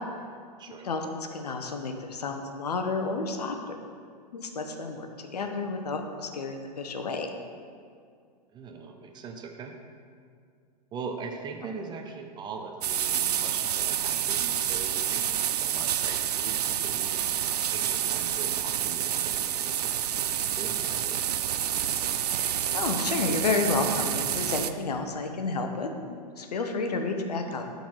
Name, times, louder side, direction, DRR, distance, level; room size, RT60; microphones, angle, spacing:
voice 1, 0.7-3.8 4.3-5.1 5.3-7.3 22.3-27.6, left 3 dB, 70° left, 5 dB, 0.9 m, -31 dB
voice 2, 8.5-9.8 10.9-17.2 17.7-21.2, right 5 dB, 20° right, 3 dB, 0.7 m, -41 dB
sound 1, 12.8-24.7, right 10 dB, 70° right, 0.4 m, -28 dB
12.0 x 4.1 x 4.7 m, 2.2 s
figure-of-eight pair, 105°, 21 cm